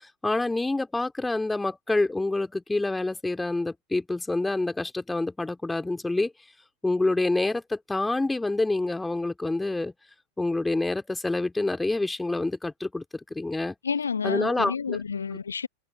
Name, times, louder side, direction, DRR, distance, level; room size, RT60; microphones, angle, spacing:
voice 1, 0.2-6.3 6.8-9.9 10.4-13.0 13.3-13.8 14.2-15.0, left 2 dB, 5° left, 2.6 m, -27 dB
voice 2, 13.8-15.7, left 6 dB, 75° left, 0.9 m, -29 dB
figure-of-eight pair, 90°, 0 cm